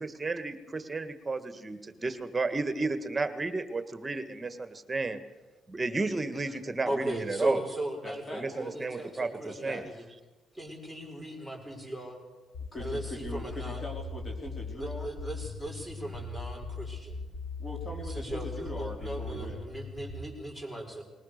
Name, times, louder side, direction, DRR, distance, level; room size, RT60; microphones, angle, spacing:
voice 1, 0.0-5.2 5.7-7.6 8.3-9.3 9.6-9.8, right 3 dB, 25° right, 10 dB, 1.8 m, -32 dB
voice 2, 6.8-10.0 10.5-12.2 12.8-13.8 14.7-17.2 18.0-21.0, right 1 dB, 10° left, 1 dB, 6.1 m, -38 dB
voice 3, 8.0-8.5 9.4-10.0 12.7-15.1 17.6-19.6, left 1 dB, 30° left, 1 dB, 4.5 m, -41 dB
sound 1, 12.5-20.2, left 3 dB, 60° left, 2.9 m, -39 dB
20.5 x 19.0 x 6.7 m, 1.1 s
cardioid pair, 90°, 0 cm